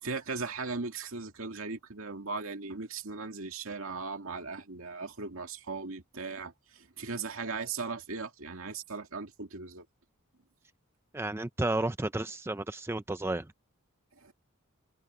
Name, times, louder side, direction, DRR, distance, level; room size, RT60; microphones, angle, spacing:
voice 1, 0.0-9.9 14.2-14.3, right 4 dB, 65° right, 2.4 m, -38 dB
voice 2, 11.1-13.4, right 2 dB, 10° right, 0.5 m, -32 dB
open air
head